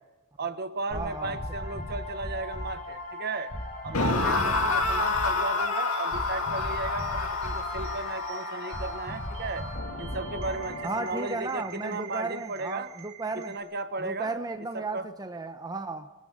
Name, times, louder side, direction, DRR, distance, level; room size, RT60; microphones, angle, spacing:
voice 1, 0.4-3.5 3.8-9.7 10.0-12.9 13.3-14.3 14.7-15.1, right 3 dB, 45° right, 10 dB, 1.3 m, -35 dB
sound 1, 0.9-11.3, left 1 dB, 40° left, 6.1 m, -37 dB
voice 2, 0.9-1.4 10.8-13.5 14.0-16.2, right 3 dB, 20° right, 7 dB, 0.9 m, -34 dB
sound 2, 3.9-11.1, left 3 dB, 70° left, 2.2 m, -29 dB
sound 3, 5.8-13.6, right 6 dB, 70° right, 4.9 m, -47 dB
24.0 x 14.0 x 8.7 m, 1.2 s
head